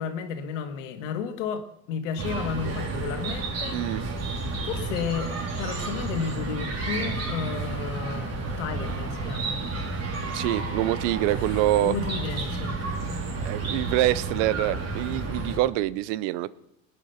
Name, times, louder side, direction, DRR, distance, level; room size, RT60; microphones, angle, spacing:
voice 1, 0.0-4.0 4.6-9.6 11.3-12.8, left 6 dB, 90° left, 7 dB, 1.9 m, -33 dB
Chirp tweet, 2.2-15.6, right 3 dB, 45° right, 3.8 m, -31 dB
voice 2, 10.3-11.9 13.0-16.5, right 15 dB, 80° right, 19 dB, 0.8 m, -26 dB
19.5 x 9.9 x 5.8 m, 0.82 s
supercardioid pair, 100°, 36 cm